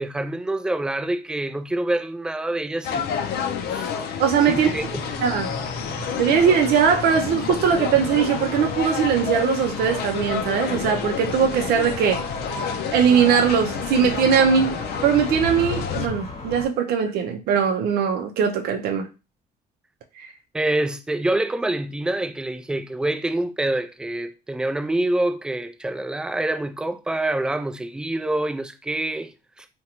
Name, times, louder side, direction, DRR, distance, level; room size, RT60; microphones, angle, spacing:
voice 1, 0.0-3.3 3.7-3.9 4.5-5.1 20.5-29.7, right 1 dB, 5° right, 0.3 m, -26 dB
sound 1, 2.8-16.1, left 7 dB, 70° left, 0.4 m, -30 dB
voice 2, 4.2-4.7 5.2-5.5 6.2-12.2 12.9-14.8 15.0-19.1 20.1-20.3, right 7 dB, 70° right, 0.5 m, -20 dB
sound 2, 4.5-16.7, left 2 dB, 35° left, 1.1 m, -35 dB
3.7 x 2.2 x 2.8 m
cardioid pair, 110°, 17 cm